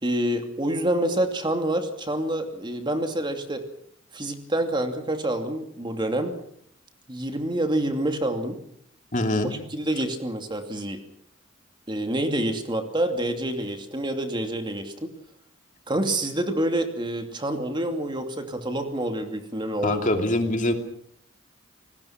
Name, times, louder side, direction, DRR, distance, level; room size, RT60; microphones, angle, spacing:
voice 1, 0.0-3.6 4.1-6.3 7.1-8.6 9.7-11.0 11.9-14.9 15.9-20.1, right 1 dB, 25° right, 5 dB, 2.6 m, -27 dB
voice 2, 9.1-9.6 19.8-20.7, left 1 dB, 40° left, 5 dB, 2.7 m, -24 dB
28.0 x 20.0 x 6.0 m, 0.68 s
head